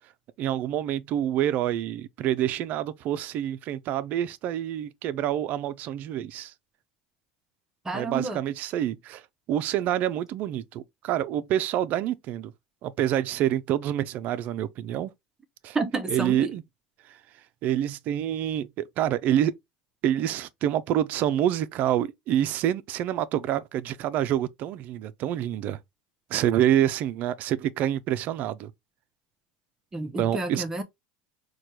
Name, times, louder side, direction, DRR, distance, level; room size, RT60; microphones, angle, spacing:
voice 1, 0.4-6.5 7.9-9.2 9.5-12.5 12.8-15.1 15.6-15.8 16.1-16.6 17.1-17.2 17.6-19.5 20.0-25.8 26.3-28.7 30.2-30.6, right 11 dB, 50° right, 0.4 m, -27 dB
voice 2, 7.8-8.4 15.7-16.5 29.9-30.8, right 3 dB, 15° right, 0.6 m, -30 dB
4.3 x 2.2 x 3.0 m
supercardioid pair, 110°, 4 cm